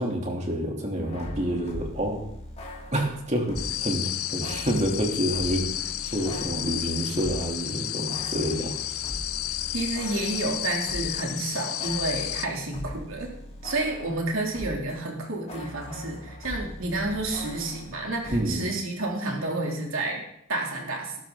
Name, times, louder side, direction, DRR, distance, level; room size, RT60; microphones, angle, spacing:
voice 1, 0.0-2.3 2.9-8.8 18.3-18.7, equal, 30° right, 0 dB, 3.1 m, -28 dB
sound 1, 1.0-3.9 4.4-7.6 7.8-14.9 15.2-18.4, left 1 dB, 30° left, 2.6 m, -41 dB
sound 2, 3.6-12.5, left 13 dB, 80° left, 0.7 m, -32 dB
voice 2, 9.7-13.3 13.6-20.2 20.5-21.2, right 2 dB, 65° right, 0 dB, 3.1 m, -30 dB
20.0 x 12.0 x 4.0 m, 0.75 s
head